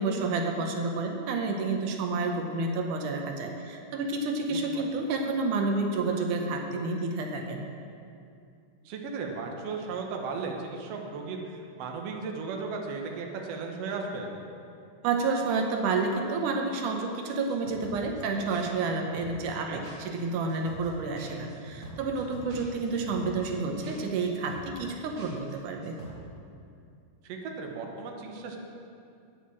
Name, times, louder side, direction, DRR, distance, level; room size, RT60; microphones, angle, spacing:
voice 1, 0.0-7.6 15.0-26.0, right 3 dB, 80° right, 3 dB, 2.4 m, -30 dB
voice 2, 4.5-4.8 8.9-14.3 19.7-19.8 27.2-28.6, right 4 dB, 60° right, 1 dB, 2.0 m, -36 dB
sound 1, 17.5-18.2 18.5-18.9 19.2-19.6 19.8-20.2 20.5-20.9 21.2-23.5 23.8-24.2 24.5-24.9 25.2-25.5 25.8-26.1, right 1 dB, 35° right, 4.1 m, -44 dB
9.2 x 8.5 x 7.4 m, 2.5 s
omnidirectional pair, 3.5 m